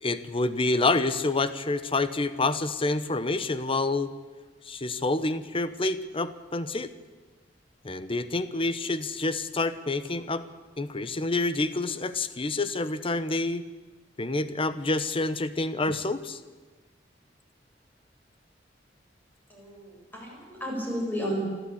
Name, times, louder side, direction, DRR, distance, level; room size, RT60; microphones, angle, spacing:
voice 1, 0.0-4.1 4.6-6.9 7.8-10.5 10.8-13.7 14.2-16.4, left 2 dB, 30° left, 13 dB, 1.0 m, -28 dB
voice 2, 19.5-21.4, equal, 10° left, -2 dB, 7.3 m, -33 dB
28.5 x 12.5 x 8.7 m, 1.4 s
head